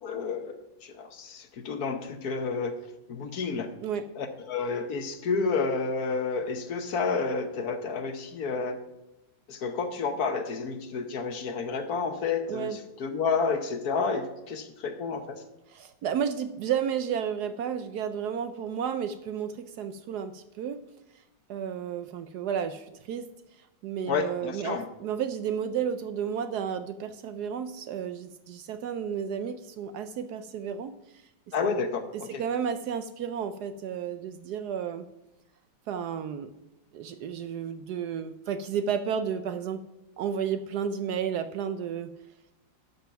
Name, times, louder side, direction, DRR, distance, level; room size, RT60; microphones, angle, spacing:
voice 1, 0.0-2.7 3.1-3.7 4.2-8.8 9.5-15.4 24.1-24.9 31.5-32.4, left 4 dB, 60° left, 8 dB, 1.3 m, -30 dB
voice 2, 15.7-20.8 21.5-23.3 23.8-31.0 32.4-35.0 35.9-36.5 36.9-39.8 40.2-42.1, right 8 dB, 70° right, 11 dB, 1.0 m, -32 dB
12.0 x 6.9 x 5.8 m, 0.94 s
omnidirectional pair, 2.0 m